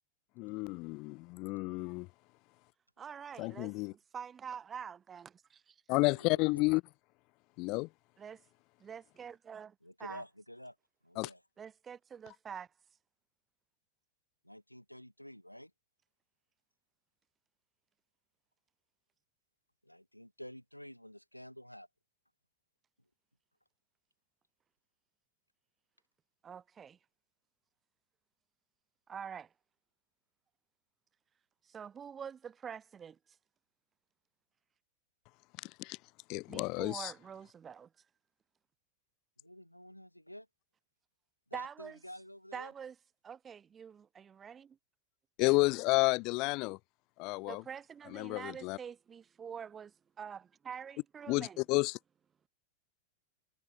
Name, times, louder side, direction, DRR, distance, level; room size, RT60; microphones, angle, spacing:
voice 1, 0.4-2.1 3.4-3.9 5.9-6.8 7.6-7.9 11.2-11.3 35.8-36.0 36.3-37.1 45.4-46.8 47.2-47.6 48.1-48.8 51.3-51.9, left 25 dB, 40° left, 1.3 m, -31 dB
voice 2, 3.0-5.7 8.2-8.4 8.8-9.7 10.0-10.2 11.6-12.7 26.4-27.0 29.1-29.5 31.6-33.2 36.5-37.9 41.5-42.0 42.5-43.0 43.2-44.8 47.5-51.6, right 7 dB, 20° right, 2.6 m, -46 dB
voice 3, 6.1-6.7 9.8-10.8 11.0-11.4 14.4-15.7 19.8-21.9 39.4-40.5 41.5-42.7, equal, 90° left, 4.1 m, -50 dB
figure-of-eight pair, 90°, 0 cm